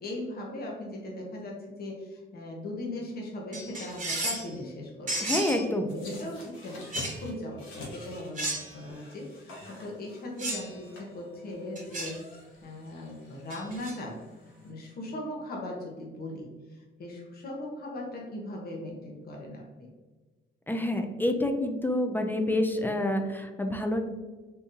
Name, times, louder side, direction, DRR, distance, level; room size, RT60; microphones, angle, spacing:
voice 1, 0.0-5.3 5.9-12.2 12.6-14.2 14.6-19.9, left 1 dB, 50° left, -1 dB, 0.9 m, -39 dB
sound 1, 3.5-4.5 5.1-5.7 6.9-7.2 8.4-8.9 10.4-10.7 11.8-12.2 13.5-14.0, right 2 dB, 40° right, 1.0 m, -33 dB
voice 2, 5.2-5.9 20.7-24.0, left 1 dB, 10° left, 5 dB, 0.4 m, -28 dB
sound 2, 5.9-14.7, left 1 dB, 85° left, 1.1 m, -48 dB
3.8 x 2.6 x 2.6 m, 1.3 s
cardioid pair, 90°, 20 cm